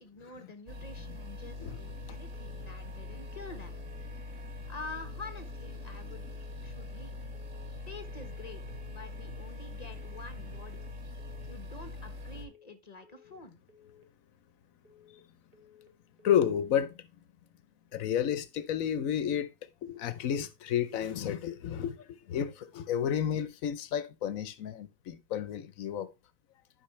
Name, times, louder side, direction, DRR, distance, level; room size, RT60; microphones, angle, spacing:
voice 1, 0.0-3.8 4.3-6.3 6.6-7.2 7.9-8.6 8.9-10.8 11.5-13.6, left 3 dB, 30° left, 1.3 m, -47 dB
sound 1, 0.7-12.5, left 3 dB, 65° right, 1.9 m, -42 dB
sound 2, 2.3-2.7 3.0-3.4 3.7-4.1 4.8-5.2 5.5-5.9 6.2-6.6 7.3-7.7 8.0-8.4 8.7-9.1 9.8-10.2 10.5-10.9 11.2-11.6 12.3-12.7 13.0-13.4 13.7-14.1 14.8-15.2 15.5-15.9 16.2-16.6, left 7 dB, 45° right, 1.5 m, -59 dB
voice 2, 16.2-17.0 17.9-19.5 19.8-26.1, left 9 dB, 80° left, 1.2 m, -31 dB
11.5 x 5.5 x 3.2 m
omnidirectional pair, 1.4 m